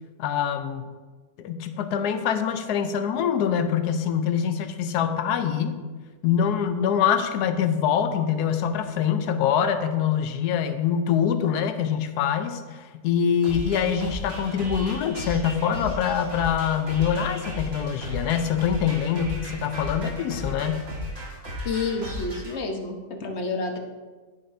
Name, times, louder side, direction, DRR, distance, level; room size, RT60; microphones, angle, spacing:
voice 1, 0.2-0.8 1.4-5.8 6.2-20.9, left 8 dB, 75° left, 9 dB, 1.2 m, -24 dB
sound 1, 13.4-22.5, left 1 dB, 55° right, 2.1 m, -35 dB
voice 2, 21.6-23.8, left 3 dB, 50° left, 3 dB, 1.0 m, -29 dB
14.5 x 5.6 x 2.6 m, 1.3 s
omnidirectional pair, 1.8 m